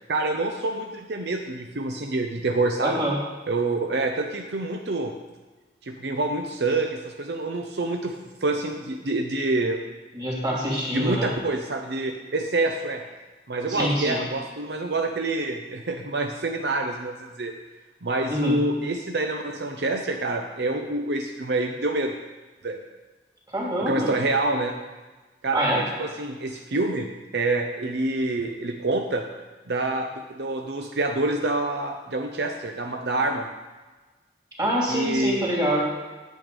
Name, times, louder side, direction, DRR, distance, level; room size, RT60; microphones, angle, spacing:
voice 1, 0.1-3.0 3.5-5.1 5.8-8.1 8.4-9.8 10.9-13.0 13.5-17.5 18.0-22.1 22.6-22.8 23.8-24.8 25.4-27.1 27.3-29.2 29.7-33.5 34.9-35.5, right 2 dB, 70° right, 3 dB, 0.7 m, -27 dB
voice 2, 2.8-3.2 10.1-11.3 13.7-14.2 18.3-18.6 23.5-24.1 25.5-25.8 34.6-35.8, equal, 25° right, -4 dB, 2.9 m, -25 dB
9.1 x 8.4 x 5.3 m, 1.3 s
head